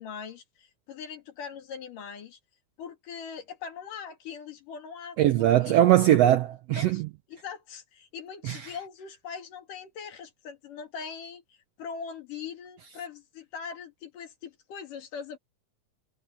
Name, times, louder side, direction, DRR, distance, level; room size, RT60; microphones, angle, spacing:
voice 1, 0.0-2.4 2.8-5.8 6.7-7.0 7.3-11.4 11.8-15.4, left 6 dB, 80° left, 4.1 m, -41 dB
voice 2, 5.2-7.0 8.4-8.7, right 12 dB, 80° right, 1.4 m, -21 dB
omnidirectional pair, 3.7 m